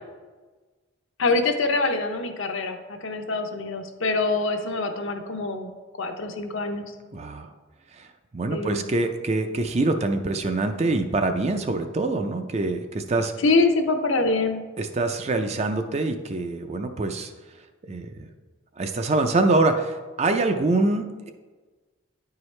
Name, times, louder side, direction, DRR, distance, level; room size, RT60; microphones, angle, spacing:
voice 1, 1.2-5.7 6.0-6.9 8.5-8.8 13.4-14.6, left 3 dB, 65° left, 6 dB, 0.7 m, -25 dB
voice 2, 7.1-7.5 7.9-8.1 8.3-13.3 14.8-17.3 17.9-18.3 18.8-21.3, right 2 dB, 30° right, 7 dB, 0.4 m, -25 dB
9.9 x 4.6 x 3.2 m, 1.3 s
head